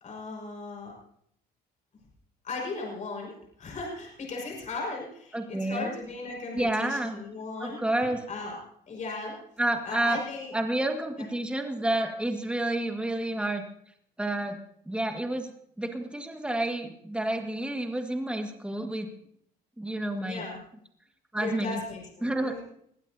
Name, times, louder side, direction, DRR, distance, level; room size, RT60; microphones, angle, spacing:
voice 1, 0.0-0.9 2.4-3.3 3.6-8.6 8.9-9.4 9.8-10.6 11.2-11.3 20.2-20.6 21.3-22.6, left 3 dB, 45° left, -1 dB, 5.6 m, -37 dB
voice 2, 5.3-5.9 6.5-7.2 7.6-8.2 9.6-10.2 10.5-13.6 14.2-14.6 14.8-19.1 19.8-20.4 21.3-21.8 22.2-22.6, right 1 dB, 5° right, 4 dB, 1.8 m, -29 dB
22.0 x 15.5 x 2.8 m, 0.70 s
cardioid pair, 110°, 17 cm